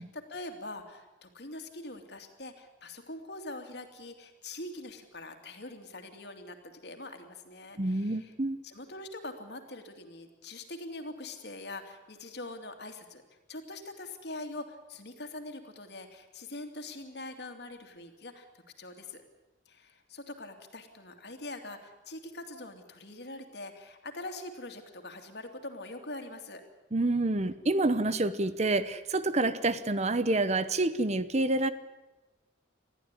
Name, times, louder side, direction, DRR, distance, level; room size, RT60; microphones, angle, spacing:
voice 1, 0.0-8.3 8.6-13.2 13.5-18.5 18.8-19.2 19.7-26.6, left 2 dB, 60° left, 6 dB, 2.7 m, -43 dB
voice 2, 7.8-8.6 26.9-31.7, right 2 dB, 35° right, 14 dB, 0.9 m, -28 dB
20.5 x 14.5 x 9.9 m, 1.1 s
head